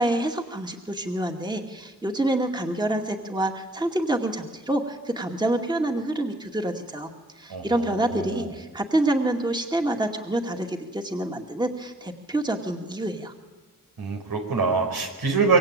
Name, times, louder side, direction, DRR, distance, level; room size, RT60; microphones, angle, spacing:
voice 1, 0.0-7.1 7.4-13.3, right 1 dB, 10° right, 3 dB, 2.3 m, -27 dB
voice 2, 7.5-8.5 14.0-15.6, right 4 dB, 85° right, 4 dB, 5.2 m, -25 dB
25.5 x 24.0 x 9.0 m, 1.3 s
wide cardioid pair, 110°, 35 cm